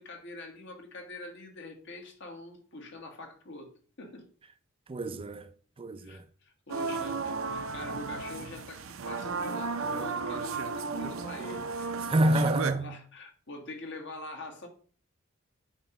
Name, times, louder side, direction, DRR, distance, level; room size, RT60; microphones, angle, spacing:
voice 1, 0.0-3.7 4.0-4.3 6.0-12.2 12.7-14.7, left 2 dB, 60° left, 1.6 m, -44 dB
voice 2, 4.9-5.5 5.8-6.3 12.0-13.0, right 1 dB, 25° right, 0.4 m, -27 dB
sound 1, 6.7-12.7, right 4 dB, 75° right, 0.6 m, -34 dB
8.8 x 3.0 x 5.5 m
head